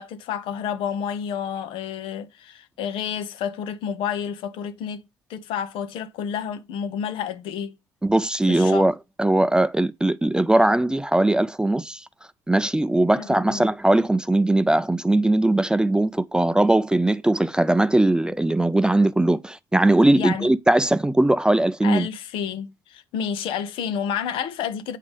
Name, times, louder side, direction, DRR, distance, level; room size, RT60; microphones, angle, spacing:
voice 1, 0.0-5.0 5.3-7.8 8.5-8.9 13.2-13.7 20.1-20.5 21.8-25.0, left 8 dB, 75° left, 0.9 m, -30 dB
voice 2, 8.0-12.0 12.5-22.1, right 1 dB, 10° right, 0.4 m, -20 dB
8.4 x 4.9 x 3.5 m
supercardioid pair, 65°, 9 cm